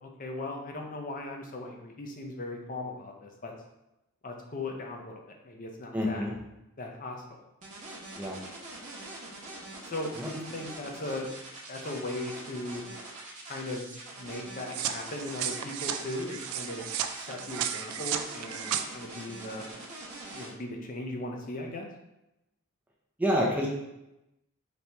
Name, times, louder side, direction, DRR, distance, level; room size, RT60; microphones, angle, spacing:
voice 1, 0.0-3.5 4.2-6.2 6.8-7.2 9.8-11.3 11.7-12.8 13.5-13.9 14.1-16.9 17.2-19.6 20.3-21.9, left 2 dB, 40° left, 2 dB, 0.6 m, -38 dB
voice 2, 5.9-6.4 8.2-8.4 10.2-10.3 23.2-23.7, equal, 5° right, -2 dB, 0.5 m, -28 dB
sound 1, 7.6-20.5, right 2 dB, 35° right, 0.9 m, -44 dB
sound 2, 14.7-18.8, right 9 dB, 70° right, 0.3 m, -34 dB
4.1 x 2.9 x 3.3 m, 0.93 s
head